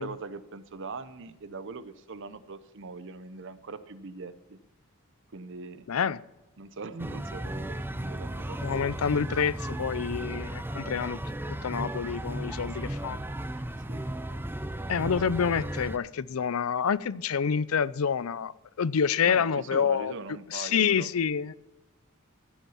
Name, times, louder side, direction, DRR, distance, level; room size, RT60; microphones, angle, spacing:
voice 1, 0.0-4.6 5.3-5.9 6.6-8.6 13.9-14.1 19.2-21.1, right 4 dB, 60° right, 13 dB, 0.8 m, -41 dB
voice 2, 5.9-6.2 8.6-11.3 11.6-13.2 14.9-18.5 18.8-20.1 20.5-21.5, left 7 dB, 80° left, 19 dB, 0.5 m, -27 dB
sound 1, 7.0-16.0, right 1 dB, 10° right, 0.6 m, -35 dB
14.5 x 8.1 x 5.6 m, 1.0 s
head